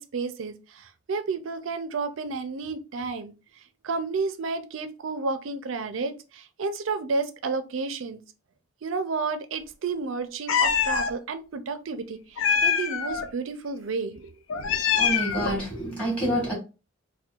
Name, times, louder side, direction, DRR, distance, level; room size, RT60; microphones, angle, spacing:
voice 1, 0.0-3.3 3.8-8.2 8.8-14.3 14.6-14.8, right 4 dB, 70° right, 0.5 m, -31 dB
Meow, 10.5-11.1 12.4-13.3 14.5-15.6, left 7 dB, 70° left, 0.4 m, -24 dB
voice 2, 14.9-16.5, right 1 dB, 5° left, 1.4 m, -27 dB
4.4 x 2.2 x 2.4 m
head